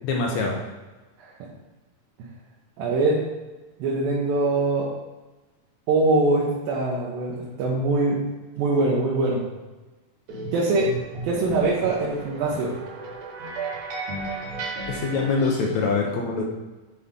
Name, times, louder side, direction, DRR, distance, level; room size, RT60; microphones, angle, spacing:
voice 1, 0.0-0.5 14.9-16.4, left 4 dB, 70° left, 0 dB, 1.8 m, -24 dB
voice 2, 2.8-3.3 3.8-4.9 5.9-8.2 8.6-9.4 10.5-10.9 11.2-12.7, right 2 dB, 75° right, -4 dB, 2.7 m, -23 dB
sound 1, 10.3-15.8, right 2 dB, 60° right, 2.3 m, -34 dB
10.0 x 4.2 x 3.7 m, 1.2 s
omnidirectional pair, 4.2 m